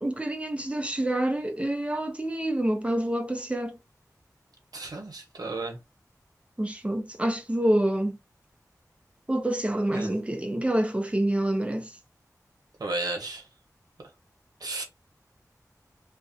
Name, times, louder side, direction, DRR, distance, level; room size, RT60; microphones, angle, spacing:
voice 1, 0.0-3.8 6.6-8.2 9.3-11.9, right 1 dB, 20° right, 0.4 m, -27 dB
voice 2, 4.7-5.8 9.9-10.1 12.8-13.5 14.6-14.8, right 2 dB, 90° right, 0.8 m, -33 dB
2.5 x 2.1 x 2.5 m
wide cardioid pair, 70°, 6 cm